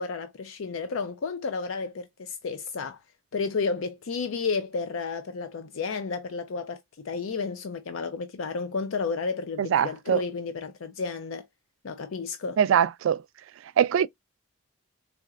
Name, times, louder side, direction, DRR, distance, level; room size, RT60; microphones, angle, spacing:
voice 1, 0.0-3.0 3.3-11.4 11.8-12.6, left 4 dB, 70° left, 0.5 m, -32 dB
voice 2, 9.6-10.2 12.6-13.2 13.8-14.1, right 8 dB, 70° right, 0.3 m, -22 dB
4.3 x 2.8 x 2.3 m
head